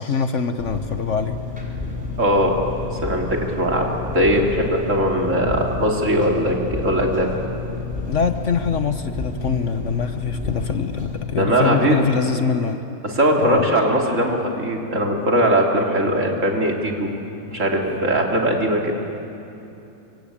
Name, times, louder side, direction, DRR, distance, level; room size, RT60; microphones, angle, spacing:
voice 1, 0.0-1.4 8.1-12.8 13.4-13.7, left 6 dB, 55° left, 8 dB, 1.3 m, -23 dB
Engine, 0.6-11.2, left 3 dB, 5° right, 4.5 m, -30 dB
voice 2, 2.2-2.6 3.0-7.3 11.3-12.0 13.0-17.1 17.5-18.9, right 1 dB, 55° right, 0 dB, 3.3 m, -20 dB
25.5 x 24.0 x 8.7 m, 2.9 s
omnidirectional pair, 1.6 m